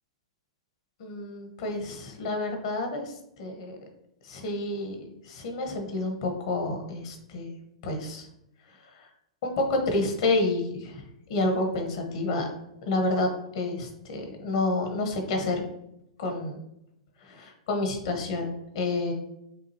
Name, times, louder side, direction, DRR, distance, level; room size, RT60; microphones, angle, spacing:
voice 1, 1.0-3.8 4.2-7.5 7.8-8.3 9.0-9.1 9.4-12.5 12.8-15.6 16.2-16.6 17.2-19.1, left 2 dB, 60° left, 4 dB, 1.1 m, -29 dB
6.1 x 2.5 x 2.9 m, 0.84 s
hypercardioid pair, 115°, 3 cm